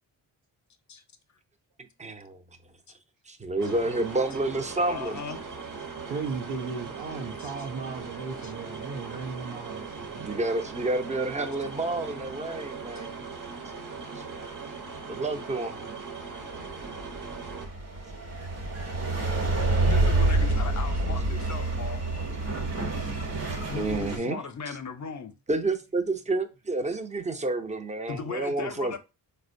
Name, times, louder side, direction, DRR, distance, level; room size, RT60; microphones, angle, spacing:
voice 1, 1.8-2.4 3.3-5.2 10.1-13.2 15.1-16.0 23.7-24.4 25.5-29.0, right 2 dB, 15° right, 0.5 m, -29 dB
sound 1, 3.6-17.7, right 5 dB, 45° right, 0.8 m, -39 dB
voice 2, 4.9-5.4 7.4-7.5 8.4-8.5 12.9-13.0 19.9-22.0 23.0-23.1 23.7-25.3 28.1-29.0, left 5 dB, 40° left, 0.6 m, -37 dB
voice 3, 6.1-10.2, right 4 dB, 85° right, 0.7 m, -36 dB
sound 2, 16.6-24.2, right 2 dB, 60° right, 1.1 m, -27 dB
4.1 x 2.1 x 2.6 m
cardioid pair, 65°, 45 cm